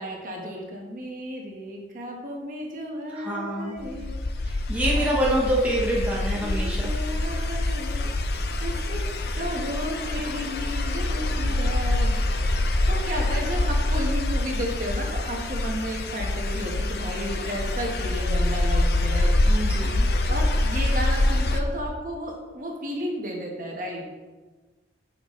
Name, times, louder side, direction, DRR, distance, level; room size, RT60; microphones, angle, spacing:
voice 1, 0.0-4.1 4.9-5.0 6.3-8.1 8.6-9.1 9.4-12.2 12.9-19.4 20.3-24.0, equal, 45° right, 0 dB, 1.3 m, -33 dB
voice 2, 3.1-3.8 4.4-6.9 19.5-20.1, right 1 dB, 10° right, -6 dB, 1.0 m, -26 dB
sound 1, 3.8-21.6, left 1 dB, 55° left, 0.6 m, -25 dB
9.7 x 5.8 x 3.2 m, 1.3 s
head